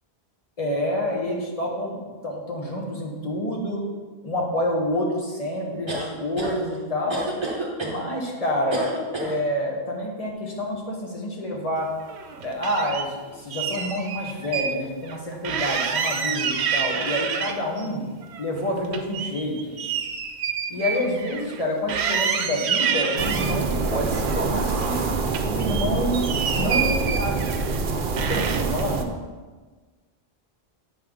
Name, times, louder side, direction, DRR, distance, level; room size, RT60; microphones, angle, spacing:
voice 1, 0.6-3.8 4.2-7.3 7.8-11.9 12.4-18.0 18.4-19.8 20.7-25.2 25.4-26.2 26.6-27.5 28.2-29.1, left 1 dB, 35° left, -1 dB, 1.3 m, -28 dB
sound 1, 5.9-6.5 7.1-8.0 8.7-9.3, right 2 dB, 25° right, 1.0 m, -29 dB
sound 2, 12.0-13.1 13.5-14.7 15.0-15.2 15.4-17.9 18.2-21.6 21.9-23.6 24.1-25.0 25.3-27.8 28.2-28.8, right 7 dB, 85° right, 0.9 m, -28 dB
sound 3, 23.2-29.0, right 4 dB, 60° right, 0.7 m, -26 dB
8.7 x 5.5 x 3.7 m, 1.3 s
omnidirectional pair, 1.1 m